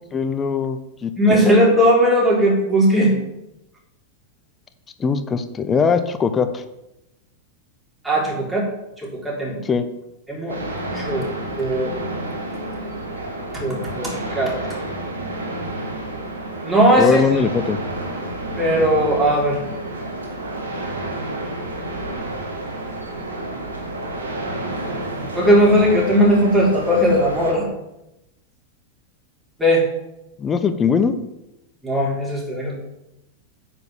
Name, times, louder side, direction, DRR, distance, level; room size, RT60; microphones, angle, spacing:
voice 1, 0.1-1.4 5.0-6.6 9.6-9.8 17.0-17.8 30.4-31.1, left 6 dB, 20° left, 9 dB, 0.8 m, -21 dB
voice 2, 1.2-3.1 8.0-8.7 9.0-9.6 10.3-10.6 10.9-11.2 11.6-11.9 13.5-14.5 16.6-17.2 18.6-19.6 25.3-27.7 29.6-29.8 31.8-32.7, equal, 10° right, -3 dB, 4.0 m, -17 dB
sound 1, 10.5-27.5, right 1 dB, 75° right, 2.0 m, -30 dB
9.3 x 5.4 x 7.5 m, 0.89 s
figure-of-eight pair, 90°, 0 cm